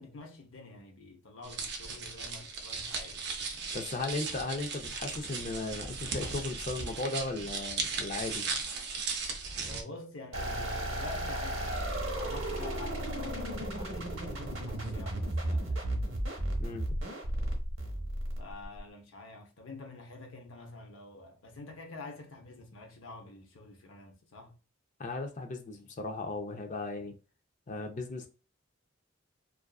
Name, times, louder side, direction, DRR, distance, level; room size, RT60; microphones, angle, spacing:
voice 1, 0.0-3.3 9.6-15.9 18.4-24.6, left 3 dB, 90° left, 0.7 m, -47 dB
sound 1, 1.4-9.8, right 4 dB, 55° right, 0.5 m, -37 dB
voice 2, 3.7-8.4 16.6-16.9 25.0-27.1 27.7-28.3, left 3 dB, 40° left, 0.5 m, -36 dB
sound 2, 10.3-18.8, right 1 dB, 85° right, 0.8 m, -34 dB
2.4 x 2.3 x 2.3 m
head